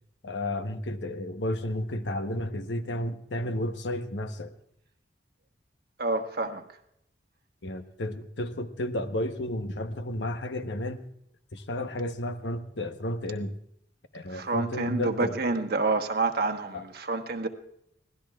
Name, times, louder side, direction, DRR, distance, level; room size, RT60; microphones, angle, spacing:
voice 1, 0.2-4.5 7.6-11.0 11.5-13.5 14.1-15.3 16.7-16.8, left 1 dB, 75° left, 1.0 m, -32 dB
voice 2, 6.0-6.7 14.3-17.5, right 3 dB, 60° right, 1.2 m, -28 dB
24.5 x 17.5 x 2.4 m
head